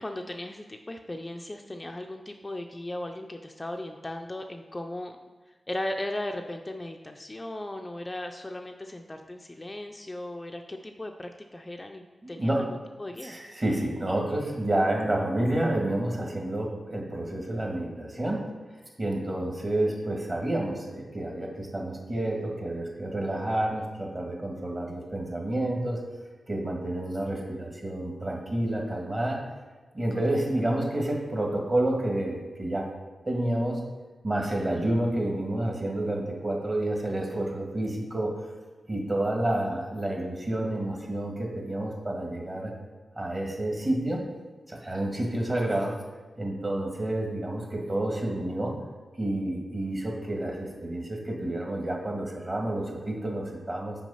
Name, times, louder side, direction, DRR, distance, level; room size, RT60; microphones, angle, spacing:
voice 1, 0.0-5.2 5.7-12.7 13.0-13.3 30.1-30.4, left 1 dB, 20° left, 4 dB, 0.4 m, -37 dB
voice 2, 12.2-12.7 13.2-18.4 19.0-26.0 26.5-29.4 29.9-32.9 33.3-33.8 34.2-38.4 38.9-42.7 43.1-44.2 44.7-45.9 46.4-48.7 49.2-54.0, right 1 dB, 35° right, 0 dB, 1.6 m, -29 dB
6.0 x 4.9 x 5.6 m, 1.2 s
wide cardioid pair, 90°, 0 cm